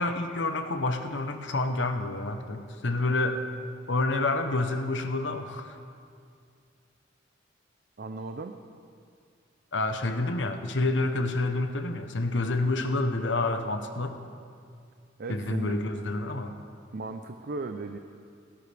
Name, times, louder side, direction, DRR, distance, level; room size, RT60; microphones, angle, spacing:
voice 1, 0.0-3.4 3.9-5.8 9.7-14.2 15.3-16.6, left 2 dB, 65° left, 7 dB, 0.9 m, -28 dB
voice 2, 8.0-8.6 15.2-16.1 16.9-18.0, right 3 dB, 50° right, 6 dB, 0.5 m, -37 dB
18.0 x 17.0 x 3.4 m, 2.3 s
head